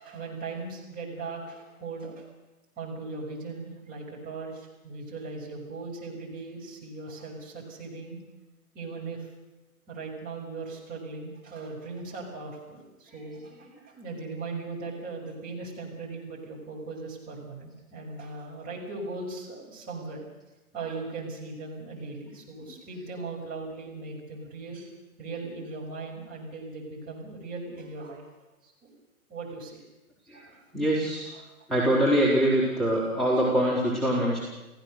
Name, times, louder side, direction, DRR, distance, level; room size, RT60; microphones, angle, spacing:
voice 1, 0.0-2.2 2.8-8.2 8.7-9.3 9.9-20.2 20.7-24.9 25.2-28.3 28.6-28.9 29.3-29.8 30.3-30.4 31.3-31.5, right 3 dB, 20° right, -2 dB, 6.0 m, -38 dB
voice 2, 30.7-31.2 31.7-34.4, equal, ahead, -7 dB, 4.2 m, -24 dB
29.5 x 16.0 x 6.7 m, 1.1 s
figure-of-eight pair, 125°, 44 cm